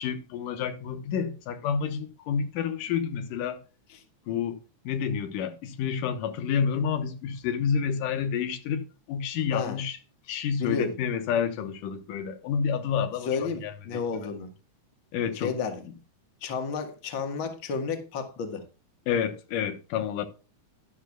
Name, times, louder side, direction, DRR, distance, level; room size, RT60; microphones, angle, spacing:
voice 1, 0.0-3.6 4.3-4.6 4.8-10.0 10.3-13.7 15.1-15.5 19.1-20.3, left 7 dB, 90° left, 2.7 m, -29 dB
voice 2, 10.6-10.9 13.2-14.5 15.3-15.8 16.4-18.6, left 5 dB, 45° left, 2.0 m, -32 dB
11.5 x 11.5 x 2.3 m
omnidirectional pair, 3.7 m